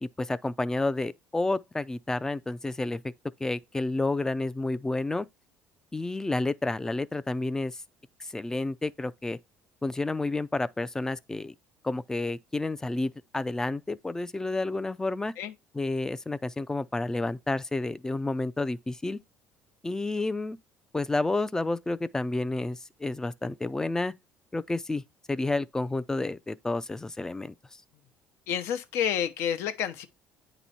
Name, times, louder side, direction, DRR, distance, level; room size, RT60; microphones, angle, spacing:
voice 1, 0.0-3.0 3.4-5.3 5.9-7.8 8.3-9.4 9.8-11.5 11.8-15.3 15.7-19.2 19.8-20.6 20.9-24.1 24.5-25.0 25.3-27.5, left 2 dB, 15° left, 0.4 m, -30 dB
voice 2, 28.5-30.1, left 9 dB, 70° left, 0.8 m, -29 dB
9.0 x 3.0 x 4.2 m
supercardioid pair, 90°, 4 cm